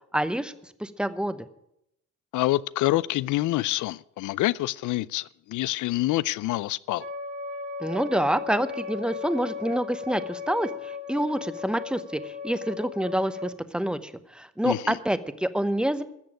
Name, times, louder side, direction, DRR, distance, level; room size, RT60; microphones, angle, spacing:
voice 1, 0.1-1.5 7.8-16.0, right 1 dB, 5° right, 0.9 m, -27 dB
voice 2, 2.3-7.0 14.6-15.0, left 17 dB, 80° left, 0.5 m, -26 dB
Wind instrument woodwind instrument, 7.0-13.5, left 5 dB, 35° right, 2.3 m, -36 dB
14.0 x 7.0 x 8.9 m
cardioid pair, 90°, 30 cm